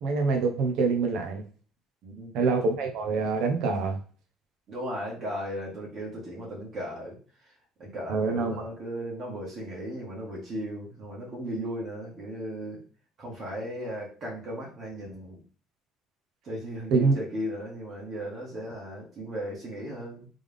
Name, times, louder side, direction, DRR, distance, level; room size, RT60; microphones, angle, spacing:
voice 1, 0.0-1.4 2.3-4.0 8.1-8.5 16.9-17.1, right 4 dB, 70° right, 3 dB, 0.9 m, -25 dB
voice 2, 4.7-12.8 13.2-15.4 16.4-20.3, equal, 45° right, -4 dB, 1.7 m, -36 dB
3.6 x 3.6 x 3.5 m, 0.39 s
cardioid pair, 135°, 0 cm